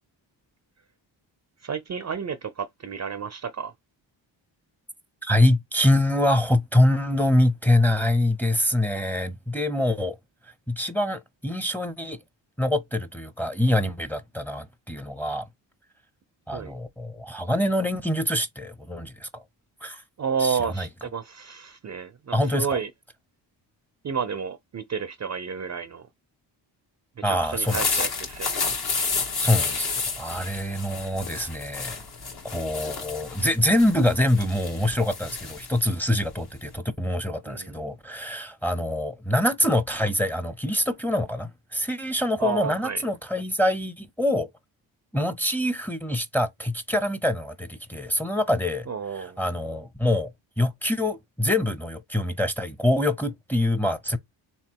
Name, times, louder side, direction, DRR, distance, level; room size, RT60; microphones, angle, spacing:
voice 1, 1.6-3.7 16.5-16.7 20.2-22.9 24.0-26.1 27.2-28.7 37.5-37.8 42.4-43.0 48.9-49.4, right 6 dB, 35° right, 0.5 m, -31 dB
voice 2, 5.2-10.2 10.7-12.2 12.6-15.5 16.5-19.4 19.8-20.0 20.4-20.9 22.3-22.7 27.2-27.8 29.4-29.9 30.2-32.0 32.4-44.5 45.1-48.9 49.2-50.3 50.6-54.2, left 1 dB, 5° left, 0.7 m, -25 dB
sound 1, 27.5-36.8, left 5 dB, 50° left, 1.3 m, -31 dB
3.4 x 3.0 x 4.5 m
cardioid pair, 75°, 47 cm